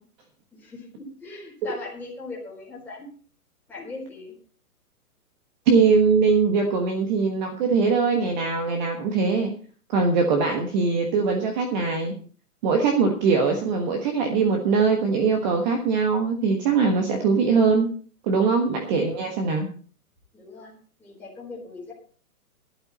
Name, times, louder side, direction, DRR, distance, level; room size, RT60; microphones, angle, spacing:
voice 1, 0.5-3.1 3.7-4.4 19.0-19.2 20.3-20.7 21.0-21.9, left 3 dB, 5° left, -5 dB, 4.0 m, -39 dB
voice 2, 5.7-9.5 9.9-12.1 12.6-17.9 18.2-19.7, right 4 dB, 30° right, 3 dB, 1.5 m, -21 dB
12.5 x 12.0 x 4.3 m, 0.43 s
hypercardioid pair, 160°, 46 cm